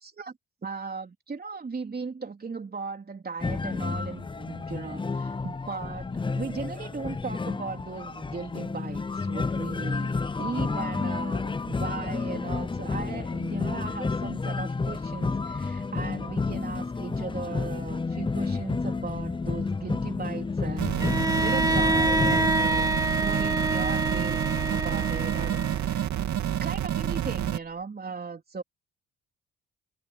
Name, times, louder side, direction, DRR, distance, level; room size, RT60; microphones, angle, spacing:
voice 1, 0.0-0.3 0.6-22.9 23.2-24.4 24.7-26.1 26.6-28.6, right 4 dB, 30° right, 3.7 m, -37 dB
sound 1, 3.4-22.5, left 4 dB, 15° left, 0.6 m, -31 dB
sound 2, 20.8-27.6, right 10 dB, 70° right, 2.7 m, -28 dB
Bowed string instrument, 21.0-26.0, right 1 dB, 10° right, 2.6 m, -27 dB
cardioid pair, 90°, 30 cm